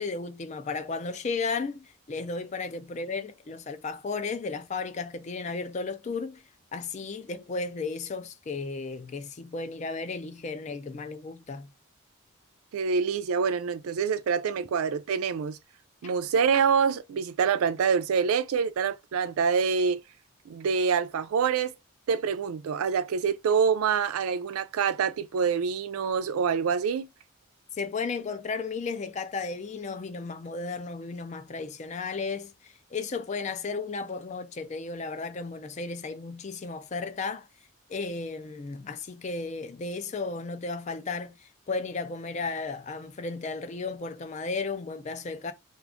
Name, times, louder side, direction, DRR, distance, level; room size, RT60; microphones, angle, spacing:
voice 1, 0.0-6.4 6.7-11.7 27.7-37.5 37.9-45.5, left 4 dB, 35° left, 0.3 m, -34 dB
voice 2, 12.7-15.6 16.0-20.0 20.5-21.7 22.1-27.1, right 6 dB, 85° right, 0.4 m, -26 dB
2.4 x 2.4 x 3.5 m
head